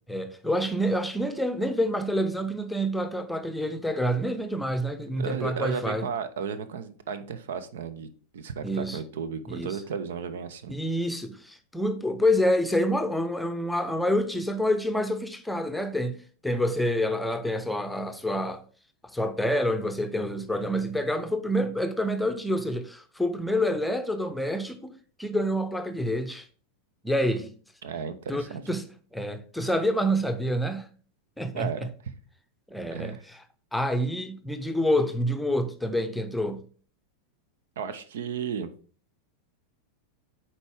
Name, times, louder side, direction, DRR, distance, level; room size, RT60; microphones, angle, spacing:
voice 1, 0.1-6.0 8.6-9.0 9.5-9.8 10.7-16.2 16.4-18.6 19.1-24.9 25.2-26.4 27.0-27.5 28.3-28.8 29.1-30.9 31.4-31.7 32.7-33.4 33.7-36.6, equal, 5° left, 0.7 m, -27 dB
voice 2, 5.2-10.7 27.8-28.7 31.5-31.9 32.9-33.2 37.8-38.7, right 6 dB, 60° right, 0.6 m, -34 dB
8.2 x 4.4 x 3.4 m
figure-of-eight pair, 90°, 0 cm